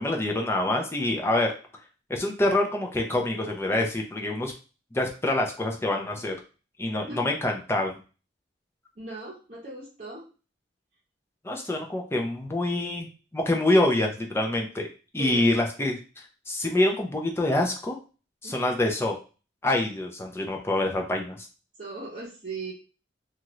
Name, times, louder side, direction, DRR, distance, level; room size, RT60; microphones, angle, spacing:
voice 1, 0.0-1.5 2.1-4.5 4.9-6.3 6.8-8.0 11.4-14.9 15.1-18.0 18.4-19.1 19.6-21.5, left 1 dB, 15° left, 1 dB, 0.5 m, -26 dB
voice 2, 8.9-10.2 15.2-15.4 18.4-18.7 21.8-22.7, right 3 dB, 40° right, -8 dB, 0.8 m, -38 dB
2.7 x 2.4 x 3.0 m, 0.34 s
head